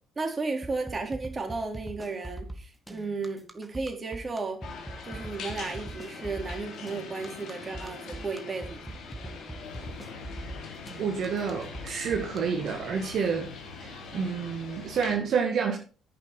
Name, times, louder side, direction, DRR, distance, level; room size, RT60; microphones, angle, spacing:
voice 1, 0.2-4.6 5.0-8.8, right 3 dB, 30° right, 3.8 m, -34 dB
sound 1, 0.6-12.4, right 2 dB, 5° right, 2.2 m, -41 dB
sound 2, 4.6-15.1, left 4 dB, 55° left, 3.5 m, -43 dB
sound 3, 9.6-15.1, left 6 dB, 85° left, 1.8 m, -48 dB
voice 2, 11.0-13.5 13.8-15.8, right 6 dB, 55° right, 2.2 m, -29 dB
10.5 x 8.8 x 5.2 m
figure-of-eight pair, 50°, 0 cm